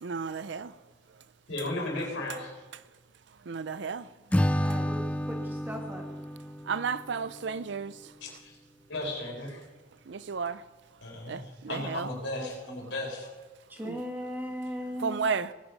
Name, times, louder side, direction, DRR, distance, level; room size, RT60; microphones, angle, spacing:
voice 1, 0.0-0.7 3.5-4.0 6.7-7.9 10.1-10.6 11.3-12.1 13.9-14.0 15.0-15.5, right 5 dB, 65° right, 0.5 m, -32 dB
voice 2, 1.5-2.5 8.4-8.5 8.9-9.6 11.0-13.3, left 2 dB, 75° left, 4.3 m, -35 dB
Acoustic guitar / Strum, 4.3-7.6, equal, 5° left, 0.3 m, -30 dB
voice 3, 4.6-6.0 11.7-12.8 13.7-15.3, equal, 10° right, 1.5 m, -39 dB
19.0 x 8.9 x 5.3 m
head